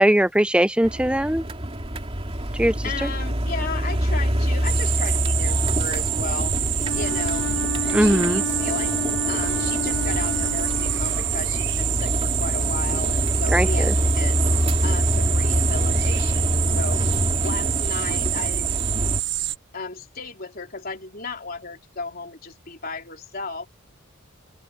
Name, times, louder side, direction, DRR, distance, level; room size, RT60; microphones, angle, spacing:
voice 1, 0.0-1.4 2.5-2.7 7.9-8.4 13.5-13.9, right 1 dB, 5° right, 0.6 m, -19 dB
sound 1, 0.8-19.2, equal, 30° right, 2.9 m, -25 dB
voice 2, 2.8-7.5 7.8-8.9 9.3-14.4 14.8-17.0 17.4-18.7 19.7-23.7, left 4 dB, 45° left, 3.6 m, -35 dB
sound 2, 4.6-19.6, right 14 dB, 55° right, 1.0 m, -27 dB
Wind instrument woodwind instrument, 6.8-11.5, left 4 dB, 80° left, 0.7 m, -31 dB
open air
head